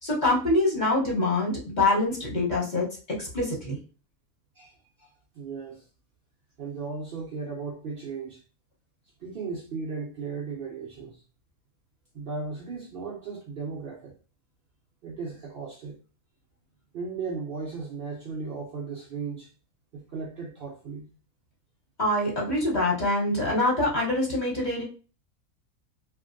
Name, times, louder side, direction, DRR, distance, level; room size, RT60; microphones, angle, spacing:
voice 1, 0.0-2.9 3.2-3.8 22.0-24.8, left 2 dB, 35° left, 1.0 m, -25 dB
voice 2, 4.6-5.9 6.6-8.4 9.2-11.2 12.1-14.2 15.0-16.0 16.9-19.5 19.9-21.1, right 4 dB, 90° right, 0.4 m, -36 dB
2.9 x 2.5 x 2.5 m
omnidirectional pair, 1.6 m